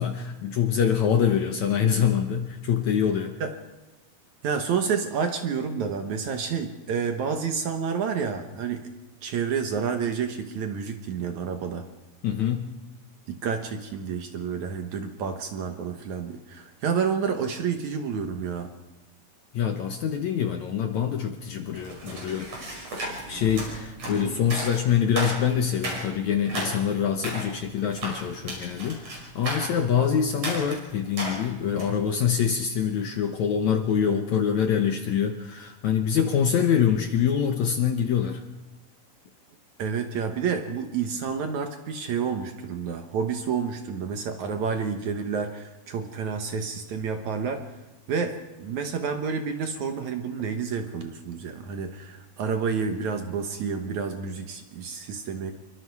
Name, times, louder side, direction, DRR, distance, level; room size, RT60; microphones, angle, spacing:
voice 1, 0.0-3.3 12.2-12.7 19.5-22.5 23.3-38.4, left 8 dB, 65° left, 6 dB, 1.9 m, -25 dB
voice 2, 4.4-8.8 9.2-11.9 13.3-18.7 39.8-47.6 48.1-55.5, right 6 dB, 60° right, 6 dB, 2.2 m, -29 dB
sound 1, 21.7-32.0, right 1 dB, 45° right, 6.7 m, -35 dB
27.0 x 23.0 x 4.8 m, 1.1 s
omnidirectional pair, 4.4 m